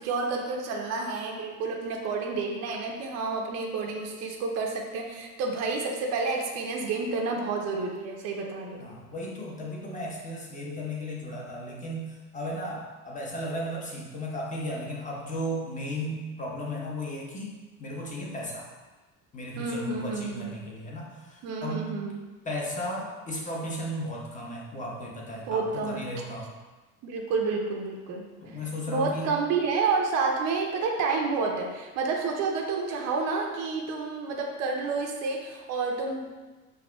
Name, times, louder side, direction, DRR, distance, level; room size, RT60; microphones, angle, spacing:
voice 1, 0.0-8.9 19.6-20.5 21.4-22.2 25.4-26.0 27.0-28.3 28.9-36.3, right 4 dB, 35° right, 1 dB, 0.6 m, -29 dB
voice 2, 8.8-18.7 19.3-21.8 22.4-26.5 28.4-29.3, equal, 15° left, -3 dB, 0.9 m, -35 dB
5.7 x 2.4 x 2.2 m, 1.2 s
figure-of-eight pair, 65°, 44 cm